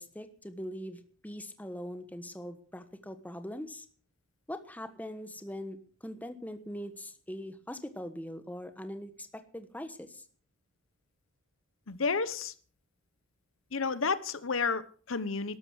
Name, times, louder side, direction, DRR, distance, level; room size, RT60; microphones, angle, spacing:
voice 1, 0.0-3.8 4.5-10.2, equal, 10° left, 9 dB, 1.2 m, -42 dB
voice 2, 11.9-12.5 13.7-15.6, left 4 dB, 85° left, 15 dB, 1.0 m, -31 dB
13.0 x 12.0 x 6.3 m, 0.43 s
head